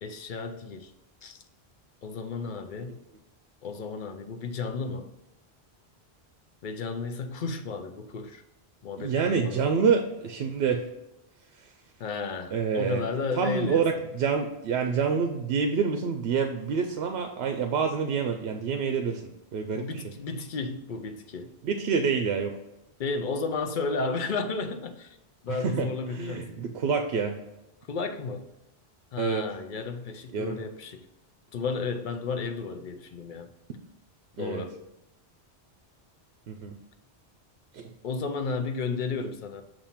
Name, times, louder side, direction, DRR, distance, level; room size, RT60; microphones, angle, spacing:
voice 1, 0.0-0.9 1.2-1.4 2.0-3.0 3.6-5.1 6.6-8.4 8.8-9.6 12.0-13.8 19.7-21.5 23.0-25.2 25.4-26.6 27.9-28.5 29.1-31.1 31.5-33.5 34.4-34.8 38.0-39.6, left 4 dB, 60° left, 7 dB, 0.6 m, -33 dB
voice 2, 9.0-10.8 11.5-11.7 12.5-13.0 13.3-20.0 21.6-22.5 25.5-27.4 29.2-29.5 30.3-30.6 34.4-34.6 36.5-36.7 37.7-37.9, right 6 dB, 75° right, 5 dB, 0.8 m, -27 dB
7.0 x 2.6 x 5.6 m, 0.93 s
omnidirectional pair, 1.1 m